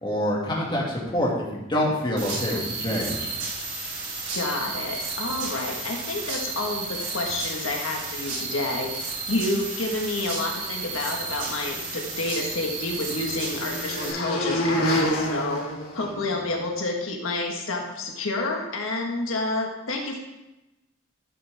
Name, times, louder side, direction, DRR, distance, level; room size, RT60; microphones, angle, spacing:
voice 1, 0.0-3.3, left 1 dB, 25° left, -4 dB, 2.3 m, -26 dB
sound 1, 2.2-14.1, right 3 dB, 75° right, 3.5 m, -33 dB
voice 2, 4.3-8.9 9.3-15.6 15.9-20.2, left 2 dB, 85° left, 1 dB, 1.6 m, -29 dB
sound 2, 12.0-16.6, equal, 50° left, 2.9 m, -28 dB
14.0 x 7.3 x 3.5 m, 0.99 s
head